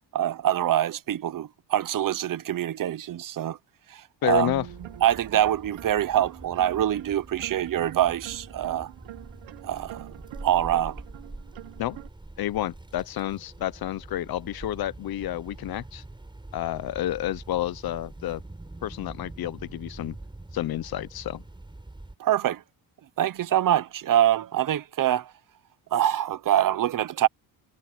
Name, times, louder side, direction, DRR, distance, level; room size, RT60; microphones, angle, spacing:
voice 1, 0.1-3.6 3.9-4.5 5.0-8.9 9.6-10.1 10.4-11.0 22.2-22.6 23.2-25.3 25.9-27.3, right 11 dB, 45° right, 0.8 m, -24 dB
voice 2, 4.2-4.7 11.8-12.0 12.4-16.0 16.5-18.4 18.8-20.2 20.5-21.4, left 13 dB, 55° left, 0.8 m, -30 dB
sound 1, 4.2-22.1, right 2 dB, 10° right, 5.9 m, -45 dB
sound 2, 4.3-12.1, right 16 dB, 85° right, 1.2 m, -44 dB
cardioid pair, 130°, 44 cm